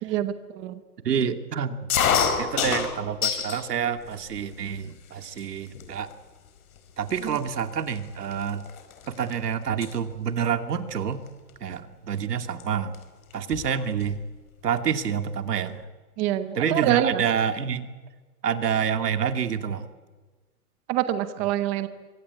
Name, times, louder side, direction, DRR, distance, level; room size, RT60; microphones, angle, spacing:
voice 1, 0.0-0.8 16.2-17.2 20.9-21.9, right 12 dB, 15° right, 11 dB, 0.7 m, -25 dB
voice 2, 1.0-1.9 2.4-6.1 7.0-8.7 9.1-11.2 11.6-12.9 13.3-14.2 14.6-15.9 16.5-17.9 18.4-19.9, right 7 dB, 85° right, 8 dB, 2.7 m, -28 dB
sound 1, 1.9-3.6 4.1-4.7 5.4-5.5 5.7-6.1 6.8-6.9 7.1-9.3 9.6-9.9 11.3-11.5 12.6-12.7 12.9-13.0 13.3-14.2, left 7 dB, 65° left, 4.8 m, -27 dB
24.5 x 23.0 x 8.3 m, 1.3 s
hypercardioid pair, 165°, 46 cm